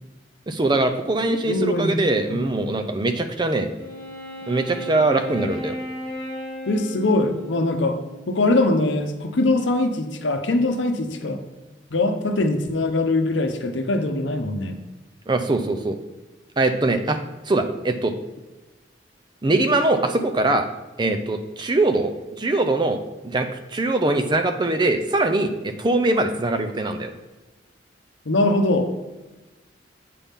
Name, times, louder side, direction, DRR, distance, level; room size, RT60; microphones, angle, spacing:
voice 1, 0.5-3.7 4.5-5.7 15.3-16.0 16.6-17.2 17.5-18.1 19.4-20.7 21.0-22.1 22.4-23.0 23.2-27.1, right 2 dB, 25° right, 7 dB, 0.5 m, -22 dB
voice 2, 1.4-2.0 2.3-2.5 6.7-8.0 8.3-11.4 11.9-14.8 28.3-28.9, left 2 dB, 75° left, 7 dB, 0.8 m, -22 dB
Wind instrument woodwind instrument, 3.7-8.3, left 1 dB, 25° left, 2.3 m, -35 dB
8.4 x 5.7 x 3.6 m, 1.1 s
head